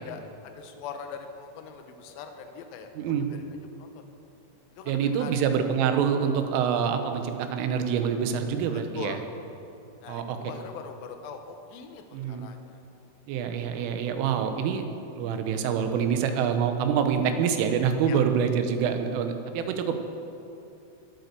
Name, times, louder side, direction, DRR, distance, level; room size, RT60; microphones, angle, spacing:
voice 1, 0.0-3.4 3.8-4.0 4.8-5.4 8.7-9.2 10.0-12.8 18.0-18.2, left 6 dB, 80° left, 6 dB, 2.2 m, -42 dB
voice 2, 3.0-3.3 4.9-9.2 10.1-10.4 12.1-12.5 13.3-14.9 15.2-20.0, right 7 dB, 85° right, 7 dB, 3.6 m, -26 dB
21.0 x 9.0 x 6.9 m, 2.7 s
omnidirectional pair, 5.6 m